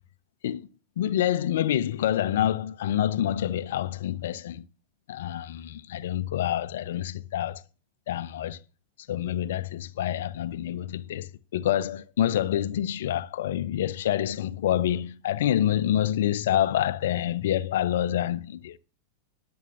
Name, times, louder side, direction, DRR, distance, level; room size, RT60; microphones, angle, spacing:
voice 1, 1.0-4.6 5.1-7.6 8.1-8.6 9.1-18.8, left 11 dB, 60° left, 0.6 m, -27 dB
19.0 x 7.1 x 2.7 m
figure-of-eight pair, 90°, 0 cm